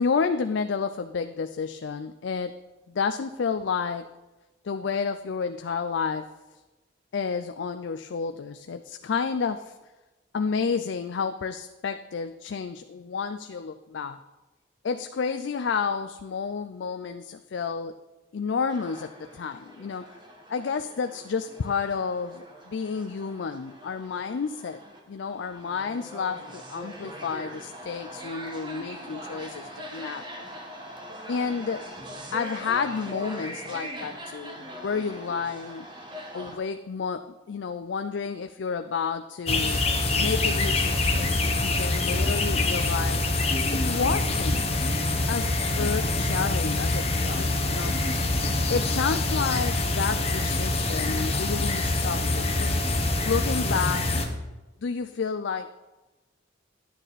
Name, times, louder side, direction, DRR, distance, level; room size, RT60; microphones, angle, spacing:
voice 1, 0.0-2.5 2.9-4.1 4.6-6.3 7.1-9.8 10.3-14.2 14.8-18.0 18.3-20.2 20.5-24.8 25.1-30.5 31.3-31.9 32.3-35.9 36.3-39.8 40.2-43.3 43.7-44.7 45.3-47.9 48.7-52.8 53.3-54.1 54.8-55.7, left 5 dB, 75° left, 8 dB, 0.4 m, -30 dB
sound 1, 18.7-36.6, equal, 25° right, 1.3 m, -42 dB
sound 2, 39.5-54.2, left 2 dB, 35° left, 1.0 m, -25 dB
11.0 x 9.1 x 4.1 m, 1.1 s
head